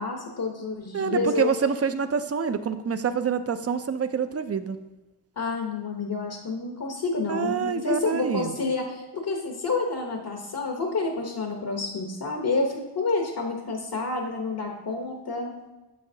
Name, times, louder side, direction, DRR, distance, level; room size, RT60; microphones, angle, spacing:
voice 1, 0.0-1.5 5.4-15.5, left 3 dB, 60° left, 1 dB, 1.0 m, -29 dB
voice 2, 0.9-4.8 7.3-8.5, right 6 dB, 35° right, 11 dB, 0.5 m, -26 dB
7.2 x 6.5 x 2.7 m, 1.1 s
cardioid pair, 60°, 41 cm